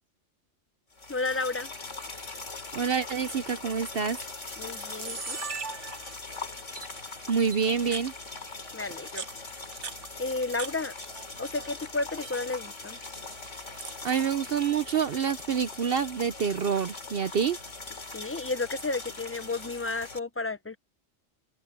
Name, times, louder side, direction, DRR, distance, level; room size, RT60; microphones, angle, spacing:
sound 1, 0.9-20.2, left 3 dB, 80° left, 3.5 m, -41 dB
voice 1, 1.1-1.7 4.6-5.4 8.7-9.2 10.2-10.9 11.4-13.0 18.1-20.8, left 3 dB, 15° left, 0.6 m, -32 dB
voice 2, 2.7-4.2 7.3-8.1 14.0-17.6, right 6 dB, 55° right, 0.8 m, -27 dB
Camera, 3.6-3.9 4.5-4.6 4.8-6.3 6.8-6.9 7.5-8.1 8.9-10.7 11.0-11.7 12.0-12.4 13.2-14.0, right 6 dB, 70° right, 1.6 m, -40 dB
omnidirectional pair, 1.3 m